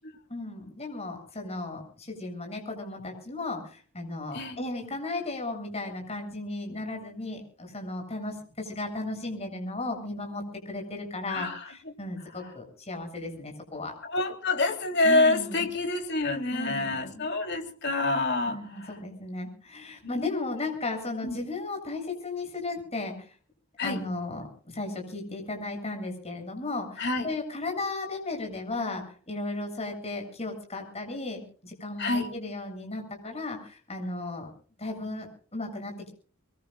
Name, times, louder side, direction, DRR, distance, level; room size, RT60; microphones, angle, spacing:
voice 1, 0.3-14.0 15.0-15.7 16.5-17.3 18.5-23.3 23.8-34.5 34.8-36.1, left 2 dB, 30° left, 7.7 m, -35 dB
voice 2, 11.3-11.9 12.4-12.5 14.0-19.0 20.0-20.4 21.2-21.4 23.8-24.0 27.0-27.3 32.0-32.3, left 2 dB, 55° left, 3.6 m, -27 dB
24.0 x 23.0 x 2.5 m
head